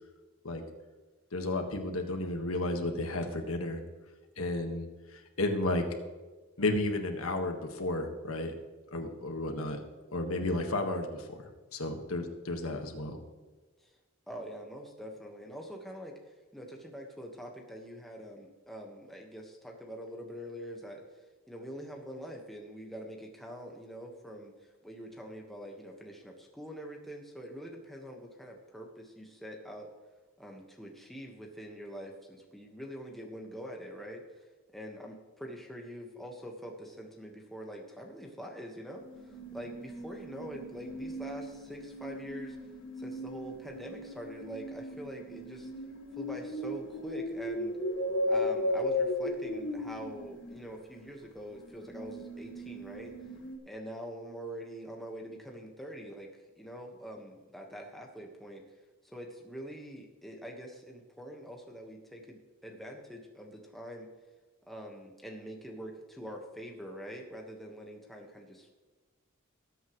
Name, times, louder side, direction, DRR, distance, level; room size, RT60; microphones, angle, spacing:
voice 1, 1.3-3.8 4.4-4.9 5.1-5.8 6.6-8.5 8.9-9.8 10.1-11.4 11.7-13.2, left 2 dB, 85° left, 4 dB, 1.6 m, -32 dB
voice 2, 14.3-29.9 30.4-42.6 43.0-45.7 46.2-47.8 48.3-53.1 53.6-56.3 56.6-58.6 59.0-64.1 64.7-68.7, equal, ahead, 0 dB, 1.4 m, -45 dB
sound 1, 38.9-50.6 51.5-53.6, left 1 dB, 60° left, 1.7 m, -36 dB
19.5 x 8.3 x 3.2 m, 1.3 s
head